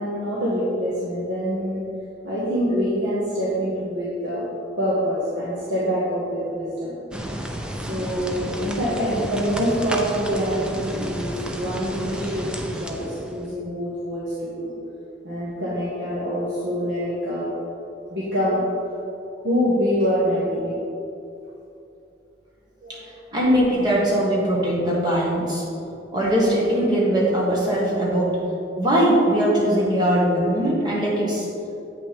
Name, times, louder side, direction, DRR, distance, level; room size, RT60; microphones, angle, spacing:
voice 1, 0.0-1.9 2.2-4.4 4.8-6.9 7.9-14.7 15.2-17.5 18.1-18.9 19.4-20.7 22.8-23.0, equal, 80° right, -8 dB, 1.3 m, -25 dB
sound 1, 7.1-13.5, equal, 5° right, 0.4 m, -31 dB
voice 2, 23.3-25.7 26.1-28.4 28.8-31.5, right 1 dB, 25° right, -5 dB, 1.5 m, -20 dB
8.3 x 5.6 x 3.5 m, 2.8 s
head